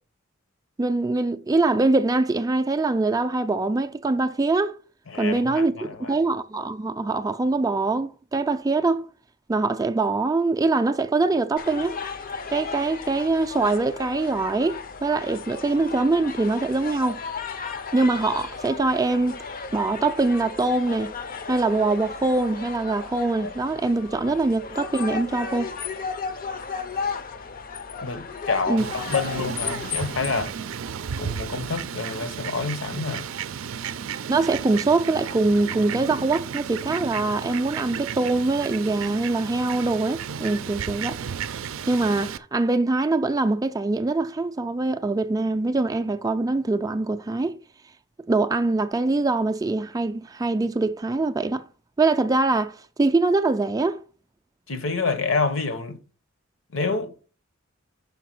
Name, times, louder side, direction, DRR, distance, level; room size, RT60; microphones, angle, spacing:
voice 1, 0.8-4.8 5.2-9.1 9.5-12.0 12.5-17.2 17.9-19.4 19.7-21.1 21.5-25.7 28.7-28.8 34.3-41.2 41.9-47.6 48.3-51.7 52.0-54.0, right 3 dB, 20° right, 0.3 m, -23 dB
voice 2, 5.1-6.2 28.0-30.5 31.2-33.2 54.7-56.0 56.7-57.2, left 4 dB, 70° left, 1.0 m, -28 dB
sound 1, 11.6-30.5, left 5 dB, 45° left, 0.6 m, -34 dB
Fowl, 28.8-42.4, right 7 dB, 80° right, 0.5 m, -33 dB
5.7 x 4.6 x 6.0 m
head